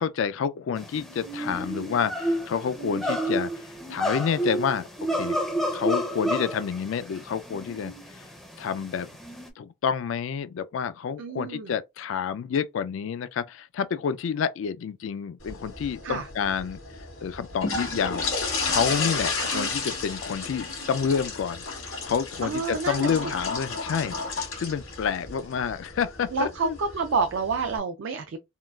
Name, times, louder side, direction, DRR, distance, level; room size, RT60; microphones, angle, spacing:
voice 1, 0.0-3.5 3.9-5.4 5.7-8.2 8.6-9.1 9.6-16.8 17.2-18.3 18.6-26.8, left 7 dB, 65° left, 0.3 m, -29 dB
sound 1, 0.8-9.5, equal, ahead, 0.5 m, -31 dB
voice 2, 11.2-11.7 16.0-16.3 19.4-19.7 22.4-23.3 26.3-28.4, right 4 dB, 60° right, 0.4 m, -29 dB
sound 2, 15.4-27.8, left 4 dB, 85° left, 1.8 m, -33 dB
3.7 x 2.3 x 2.2 m
head